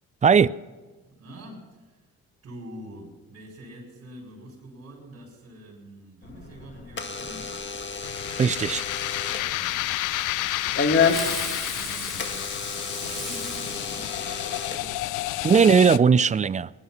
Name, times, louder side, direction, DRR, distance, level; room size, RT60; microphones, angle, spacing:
voice 1, 0.2-0.5 8.3-8.8 15.4-16.7, right 6 dB, 25° right, 0.4 m, -18 dB
voice 2, 1.1-2.0 2.4-7.6 9.3-9.9 10.7-15.3, right 1 dB, 55° right, 5.3 m, -45 dB
Door / Alarm, 6.2-15.5, left 5 dB, 40° left, 1.8 m, -31 dB
sound 1, 8.0-16.0, left 16 dB, 90° left, 0.5 m, -31 dB
Fireworks, 11.0-14.9, right 1 dB, ahead, 4.8 m, -37 dB
21.0 x 11.0 x 5.8 m
cardioid pair, 90°, 30 cm